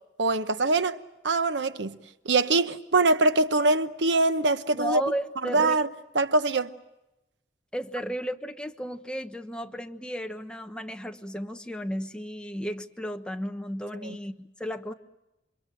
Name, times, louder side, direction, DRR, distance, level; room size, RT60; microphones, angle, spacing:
voice 1, 0.2-1.0 1.2-2.0 2.2-5.0 5.4-5.9 6.1-6.7 14.0-14.2, right 3 dB, 90° right, 1.0 m, -23 dB
voice 2, 4.7-5.8 7.7-14.9, equal, 5° left, 1.2 m, -34 dB
29.0 x 25.5 x 7.7 m
head